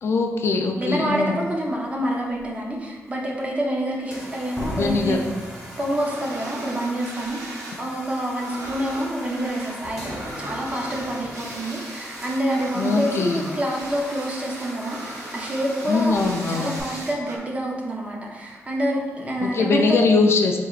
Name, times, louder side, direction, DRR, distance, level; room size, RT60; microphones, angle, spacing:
voice 1, 0.0-1.4 4.7-5.2 12.8-13.5 15.9-16.8 19.4-20.7, left 4 dB, 55° left, 3 dB, 0.4 m, -22 dB
voice 2, 0.8-5.2 5.8-20.0, right 1 dB, 25° right, -1 dB, 0.7 m, -27 dB
Slam, 1.4-1.5 2.1-2.5 4.6-6.4 6.7-6.8, left 1 dB, 15° left, 0.8 m, -35 dB
sound 1, 4.0-16.8, equal, 5° right, 1.1 m, -41 dB
sound 2, 5.9-7.8 8.1-17.4, right 2 dB, 80° right, 0.7 m, -38 dB
4.7 x 3.8 x 2.4 m, 1.4 s
wide cardioid pair, 145°, 5 cm